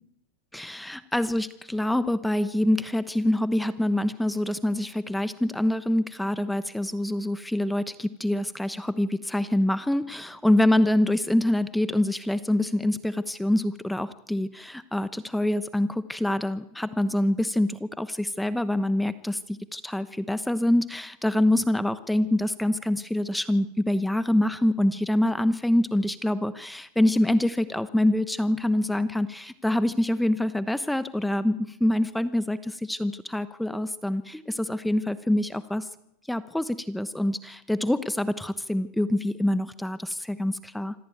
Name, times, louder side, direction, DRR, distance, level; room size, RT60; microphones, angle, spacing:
voice 1, 0.5-35.9 36.3-40.9, left 1 dB, 5° left, 13 dB, 1.0 m, -25 dB
25.5 x 16.0 x 9.3 m, 0.83 s
hypercardioid pair, 115°, 0 cm